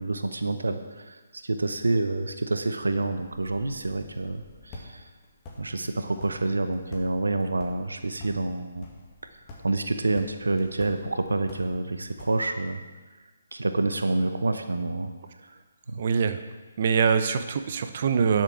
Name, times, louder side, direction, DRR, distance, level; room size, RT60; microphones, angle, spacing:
voice 1, 0.0-5.1 5.6-8.9 9.6-12.8 13.5-15.1 15.4-15.5 15.9-16.0, right 2 dB, 75° right, 8 dB, 0.9 m, -28 dB
sound 1, 3.1-12.7, left 2 dB, 25° left, 2.2 m, -49 dB
voice 2, 16.0-16.4 16.8-18.4, right 6 dB, 45° right, 10 dB, 0.8 m, -23 dB
10.0 x 7.6 x 6.1 m, 1.3 s
figure-of-eight pair, 140°, 0 cm